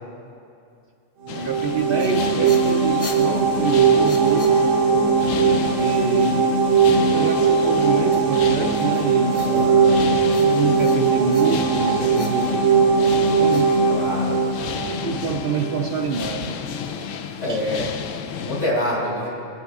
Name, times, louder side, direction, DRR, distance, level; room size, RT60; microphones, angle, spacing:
sound 1, 1.3-18.7, left 7 dB, 90° left, 1.0 m, -32 dB
voice 1, 1.3-4.6 5.8-6.7 7.1-9.5 10.5-13.7 15.0-16.6 17.5-17.6, right 5 dB, 60° right, 3 dB, 0.6 m, -27 dB
sound 2, 1.3-15.9, right 5 dB, 75° right, 1.3 m, -19 dB
sound 3, 1.9-5.1 8.1-9.9 10.3-11.8 12.1-14.4, left 2 dB, 30° left, 0.9 m, -41 dB
voice 2, 9.5-10.0 13.9-14.4 17.4-17.9 18.4-19.4, left 1 dB, 65° left, -4 dB, 2.6 m, -26 dB
18.5 x 7.1 x 3.6 m, 2.5 s
omnidirectional pair, 1.3 m